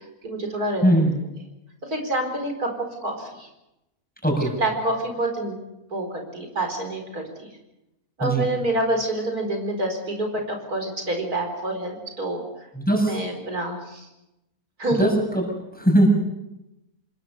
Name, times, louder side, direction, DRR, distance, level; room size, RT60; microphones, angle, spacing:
voice 1, 0.2-0.8 1.9-2.7 3.0-3.5 4.6-5.6 5.9-7.5 8.2-12.4 13.0-14.1 14.8-15.0, right 1 dB, 75° right, 4 dB, 5.1 m, -27 dB
voice 2, 0.8-1.2 4.2-4.5 8.2-8.5 12.7-13.2 15.0-15.5 15.7-16.1, right 1 dB, 5° left, 1 dB, 7.0 m, -20 dB
28.0 x 21.0 x 6.8 m, 0.92 s
omnidirectional pair, 1.6 m